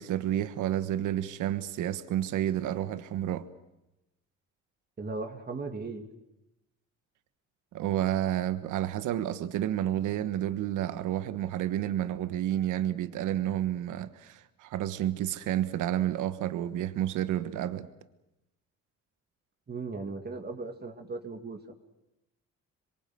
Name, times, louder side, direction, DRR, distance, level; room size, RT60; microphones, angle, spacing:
voice 1, 0.0-3.5 7.7-17.9, right 12 dB, 90° right, 1.3 m, -30 dB
voice 2, 5.0-6.1 19.7-21.7, right 3 dB, 30° right, 2.6 m, -37 dB
26.5 x 23.0 x 8.0 m
cardioid pair, 90°, 30 cm